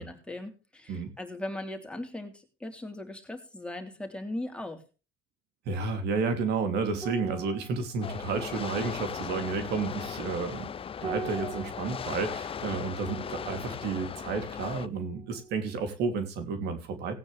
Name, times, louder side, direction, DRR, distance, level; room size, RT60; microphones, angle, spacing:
voice 1, 0.0-4.8, left 1 dB, 5° left, 4 dB, 3.2 m, -39 dB
voice 2, 5.7-10.7 11.0-17.1, right 4 dB, 80° right, 7 dB, 2.8 m, -31 dB
sound 1, 7.0-15.7 16.0-16.2, right 3 dB, 25° right, 2.1 m, -44 dB
sound 2, 8.0-14.9, left 7 dB, 35° left, 0.6 m, -37 dB
18.0 x 9.3 x 3.4 m, 0.33 s
cardioid pair, 110°, 17 cm